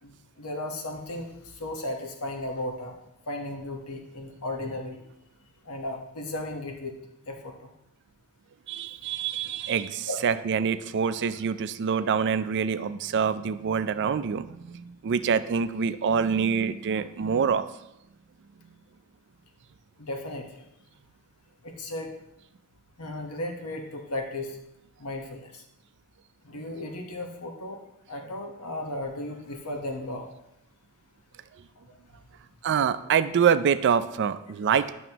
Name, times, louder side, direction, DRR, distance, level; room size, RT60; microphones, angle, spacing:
voice 1, 0.0-3.0 3.3-5.0 5.6-7.0 7.3-7.7 9.1-9.2 10.1-10.2 20.0-20.6 21.6-22.2 23.0-24.6 25.0-25.6 26.4-27.8 28.1-30.3, left 1 dB, 85° left, 3 dB, 1.1 m, -35 dB
voice 2, 8.7-17.7 32.6-34.9, right 7 dB, 55° right, 12 dB, 0.4 m, -25 dB
11.0 x 6.2 x 2.9 m, 0.87 s
head